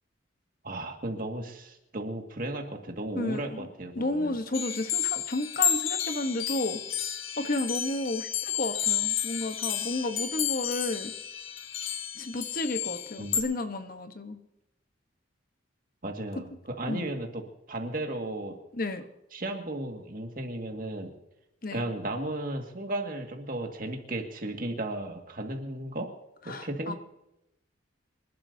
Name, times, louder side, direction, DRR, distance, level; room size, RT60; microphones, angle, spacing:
voice 1, 0.6-4.3 13.2-13.4 16.0-17.4 17.7-18.6 19.3-21.1 21.7-26.1 26.5-26.9, right 1 dB, 45° right, 3 dB, 2.0 m, -35 dB
voice 2, 3.1-3.7 3.9-6.8 7.4-11.1 12.2-14.4 16.9-17.1 18.7-19.1 21.6-21.9 26.5-26.9, left 2 dB, 45° left, 8 dB, 1.1 m, -32 dB
sound 1, 4.5-13.4, left 10 dB, 85° left, 1.1 m, -31 dB
26.5 x 11.5 x 2.8 m, 0.86 s
head